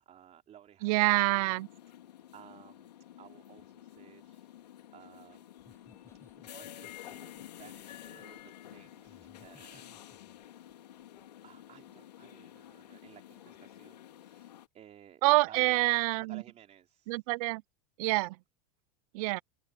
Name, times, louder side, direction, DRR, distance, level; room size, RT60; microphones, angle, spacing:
voice 1, 0.0-1.6 2.0-4.6 4.9-5.5 6.1-10.0 10.5-10.8 11.4-17.3, right 10 dB, 35° right, 3.3 m, -56 dB
voice 2, 0.8-1.7 15.2-16.4 17.1-17.6 18.0-18.4 19.1-19.4, right 23 dB, 65° right, 0.6 m, -26 dB
sound 1, 1.5-14.7, left 12 dB, 85° left, 3.1 m, -51 dB
Laughter, 5.6-11.3 11.7-12.0, left 3 dB, 15° left, 8.0 m, -63 dB
open air
hypercardioid pair, 105°, 20 cm